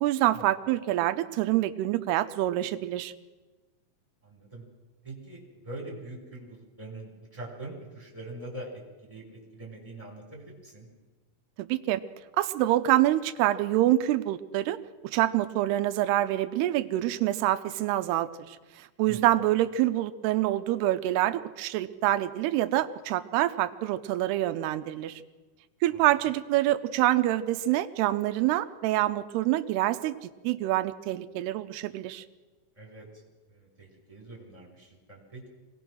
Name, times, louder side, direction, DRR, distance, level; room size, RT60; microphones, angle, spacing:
voice 1, 0.0-3.1 11.6-12.0 12.4-14.8 15.1-25.2 25.8-32.2, right 14 dB, 80° right, 10 dB, 2.8 m, -26 dB
voice 2, 4.2-4.6 5.0-10.9 19.0-19.3 25.9-26.1 32.8-33.2 33.5-35.5, right 2 dB, 10° right, 1 dB, 4.4 m, -43 dB
24.5 x 19.0 x 6.3 m, 1.2 s
omnidirectional pair, 4.7 m